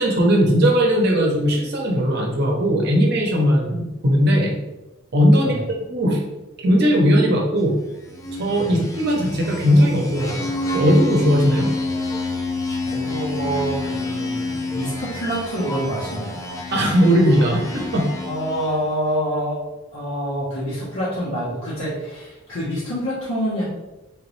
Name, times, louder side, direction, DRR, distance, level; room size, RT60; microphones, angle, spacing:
voice 1, 0.0-4.6 5.1-5.5 5.9-6.2 6.6-7.7 8.4-11.7 16.7-18.0, equal, 55° right, 0 dB, 0.7 m, -18 dB
voice 2, 5.3-5.7 8.6-8.8 12.8-16.3 17.4-17.5 18.2-19.6 19.9-23.6, equal, 80° left, -9 dB, 1.1 m, -26 dB
sound 1, 8.0-18.9, left 2 dB, 15° left, 0.4 m, -29 dB
3.3 x 3.0 x 3.1 m, 1.0 s
head